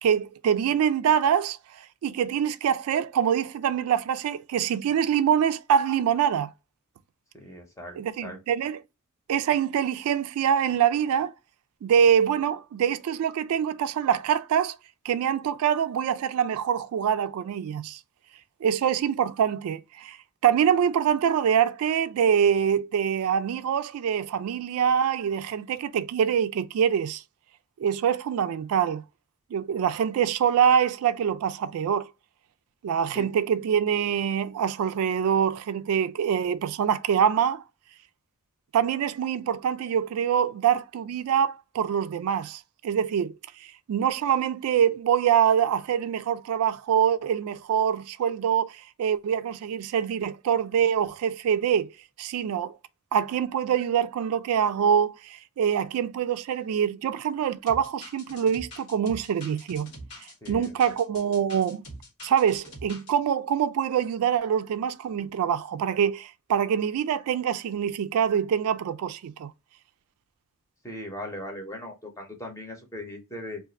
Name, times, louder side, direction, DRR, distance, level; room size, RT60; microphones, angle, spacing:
voice 1, 0.0-6.5 8.0-8.8 9.3-11.3 11.8-14.8 15.0-18.0 18.6-20.2 20.4-27.2 27.8-29.0 29.5-32.1 32.8-37.6 38.7-43.3 43.6-51.9 52.2-52.8 53.1-59.9 60.5-61.8 62.2-69.5, right 8 dB, 70° right, 0.3 m, -25 dB
voice 2, 7.3-8.4 33.1-33.3 60.4-60.9 70.8-73.6, left 1 dB, 15° left, 0.8 m, -39 dB
sound 1, 57.7-63.1, equal, 80° left, 1.4 m, -44 dB
2.5 x 2.4 x 4.0 m
head